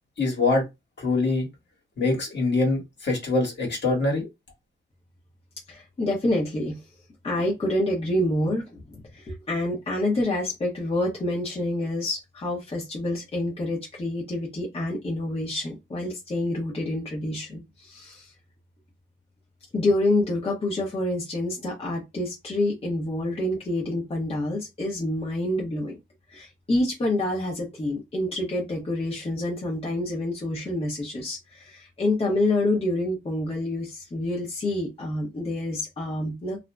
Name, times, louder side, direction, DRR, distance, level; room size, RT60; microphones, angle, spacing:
voice 1, 0.2-0.6 1.0-1.5 2.0-4.3, left 3 dB, 60° left, 1.3 m, -24 dB
voice 2, 5.7-6.8 7.2-18.3 19.7-26.0 26.3-36.6, left 1 dB, 30° left, 0.8 m, -27 dB
2.5 x 2.0 x 3.2 m
wide cardioid pair, 155°, 20 cm